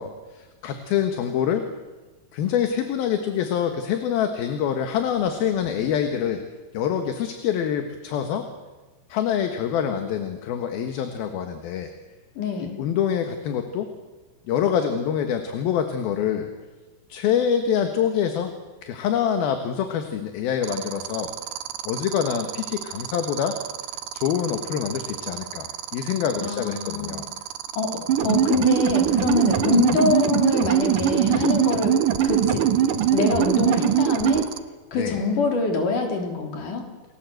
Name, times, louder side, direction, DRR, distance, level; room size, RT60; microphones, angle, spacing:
voice 1, 0.0-1.7 2.3-6.4 6.7-8.5 9.1-11.9 12.8-13.9 14.5-16.5 17.1-18.5 18.8-21.3 21.8-23.6 24.1-27.3 34.9-35.2, left 8 dB, 70° left, 6 dB, 3.2 m, -25 dB
voice 2, 12.4-12.8 26.4-27.2 27.8-27.9 28.2-31.9 32.2-32.6 33.1-34.4 34.9-36.9, left 4 dB, 55° left, 3 dB, 4.9 m, -24 dB
sound 1, 20.6-34.6, right 13 dB, 80° right, 3.1 m, -34 dB
sound 2, 28.1-34.4, right 10 dB, 60° right, 3.0 m, -21 dB
29.5 x 21.0 x 7.9 m, 1.2 s
omnidirectional pair, 4.7 m